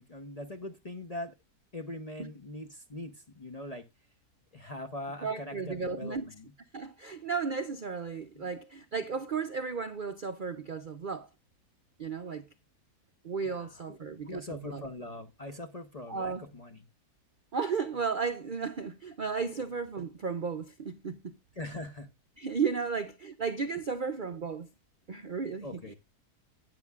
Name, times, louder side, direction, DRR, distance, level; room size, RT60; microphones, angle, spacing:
voice 1, 0.0-1.3 1.7-3.8 4.5-6.5 8.3-8.5 13.4-16.8 21.6-22.1 25.6-25.9, left 1 dB, 30° left, 0.7 m, -42 dB
voice 2, 5.2-6.3 6.7-11.3 12.0-12.4 13.2-14.8 16.1-16.5 17.5-21.3 22.4-24.7 25.1-25.7, right 5 dB, 50° right, 0.6 m, -34 dB
13.5 x 9.2 x 2.4 m
omnidirectional pair, 1.7 m